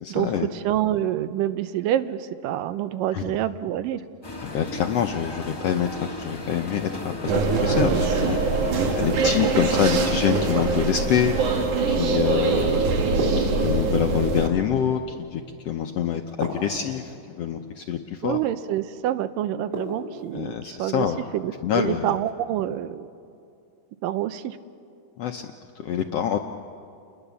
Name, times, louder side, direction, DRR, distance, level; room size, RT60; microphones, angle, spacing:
voice 1, 0.0-0.5 3.1-3.4 4.4-8.4 8.9-11.3 11.9-13.0 13.4-18.4 20.3-21.2 21.6-22.1 25.2-25.5 25.7-26.4, left 9 dB, 75° left, 4 dB, 1.5 m, -26 dB
voice 2, 0.6-4.0 12.4-12.6 18.2-21.1 21.3-23.1 24.0-24.6, right 12 dB, 85° right, 13 dB, 2.4 m, -27 dB
sound 1, 4.2-11.7, left 2 dB, 40° left, 0.3 m, -36 dB
sound 2, 7.3-14.5, right 4 dB, 65° right, 3.2 m, -23 dB
sound 3, 10.3-11.1 13.2-14.2 16.4-17.2 19.7-20.4, equal, 30° right, 5.1 m, -33 dB
29.5 x 21.5 x 7.1 m, 2.5 s
omnidirectional pair, 3.9 m